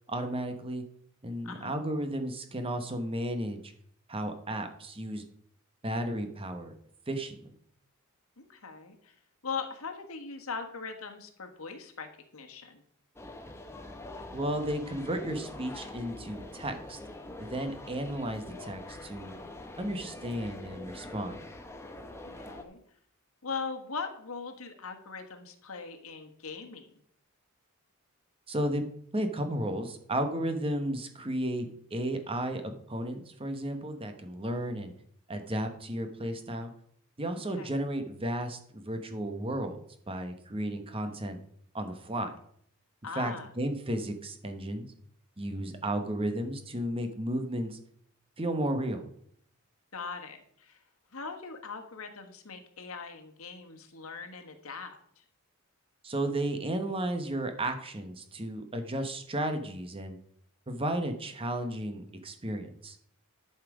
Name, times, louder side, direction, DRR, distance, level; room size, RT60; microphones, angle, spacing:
voice 1, 0.1-0.8 1.2-3.7 4.1-5.2 5.8-6.7 7.1-7.5 14.3-17.0 17.4-19.3 19.8-21.4 28.5-28.9 29.1-34.9 35.3-36.7 37.2-39.8 40.1-41.4 41.7-42.3 43.1-44.9 45.4-47.8 48.4-49.1 56.0-60.2 60.7-63.0, right 1 dB, 25° right, 7 dB, 1.0 m, -33 dB
voice 2, 1.4-1.8 8.4-9.1 9.4-12.8 22.2-22.8 23.4-27.0 37.6-37.8 43.0-43.5 49.9-50.8 51.1-55.2, left 5 dB, 75° left, 5 dB, 1.4 m, -40 dB
sound 1, 13.2-22.6, left 2 dB, 10° left, 0.9 m, -44 dB
11.5 x 5.7 x 4.9 m, 0.65 s
head